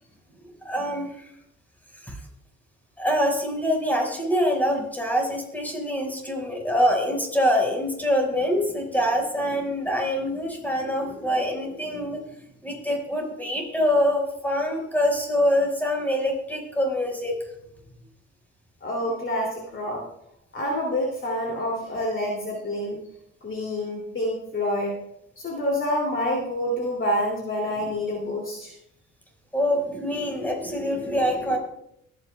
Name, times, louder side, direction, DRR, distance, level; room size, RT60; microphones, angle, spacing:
voice 1, 0.6-1.3 1.9-2.2 3.0-12.2 12.6-17.3 27.8-27.9 29.5-31.6, equal, 5° left, 0 dB, 5.0 m, -25 dB
voice 2, 18.8-20.0 20.5-23.0 23.4-25.0 25.4-28.7, left 1 dB, 40° left, -1 dB, 2.7 m, -27 dB
23.5 x 9.8 x 2.3 m, 0.76 s
cardioid pair, 90°, 30 cm